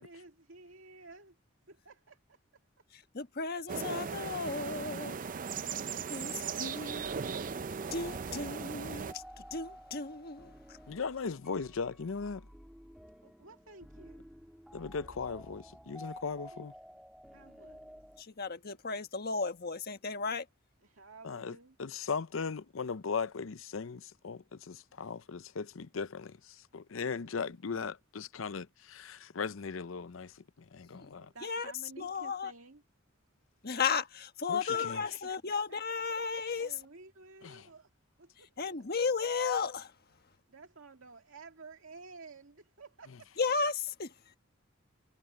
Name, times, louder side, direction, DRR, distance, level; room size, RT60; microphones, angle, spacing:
voice 1, 0.0-1.4 1.7-2.4 6.4-7.6 13.2-14.3 16.5-17.0 17.3-18.0 20.8-21.8 27.2-27.9 30.8-32.8 34.5-35.6 36.6-37.9 38.2-38.6 40.5-43.3, right 4 dB, 85° right, 2.1 m, -53 dB
voice 2, 2.9-5.2 6.1-7.0 7.9-10.8 18.2-20.4 30.9-31.1 31.4-31.7 32.0-32.5 33.6-36.7 38.6-39.9 43.4-44.1, left 5 dB, 50° left, 1.3 m, -34 dB
sound 1, 3.7-9.1, right 6 dB, 45° right, 0.5 m, -38 dB
sound 2, 6.5-18.2, equal, ahead, 2.2 m, -52 dB
voice 3, 10.9-12.5 14.7-16.7 21.2-31.3 34.5-35.0 37.4-37.7, left 5 dB, 80° left, 0.6 m, -38 dB
head